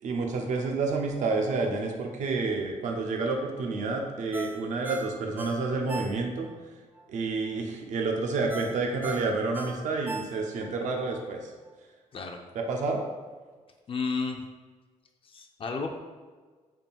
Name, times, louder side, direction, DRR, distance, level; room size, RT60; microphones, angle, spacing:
voice 1, 0.0-6.5 7.1-11.5 12.5-13.0, right 3 dB, 75° right, 2 dB, 0.6 m, -29 dB
Ringtone, 4.3-6.6 7.0-7.1 8.5-10.7 11.1-11.2, right 2 dB, 15° right, 0.4 m, -39 dB
voice 2, 13.9-14.4 15.2-16.0, left 4 dB, 45° left, 3 dB, 0.5 m, -32 dB
3.6 x 2.3 x 4.1 m, 1.4 s
cardioid pair, 90°, 13 cm